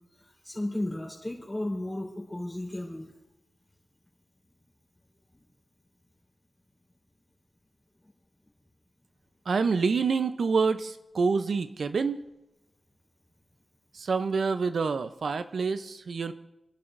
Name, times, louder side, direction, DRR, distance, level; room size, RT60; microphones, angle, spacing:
voice 1, 0.2-3.1, left 1 dB, 10° left, -2 dB, 3.9 m, -34 dB
voice 2, 9.5-12.2 13.9-16.3, right 5 dB, 60° right, 10 dB, 0.6 m, -27 dB
28.5 x 11.5 x 2.6 m, 0.93 s
wide cardioid pair, 125°, 0 cm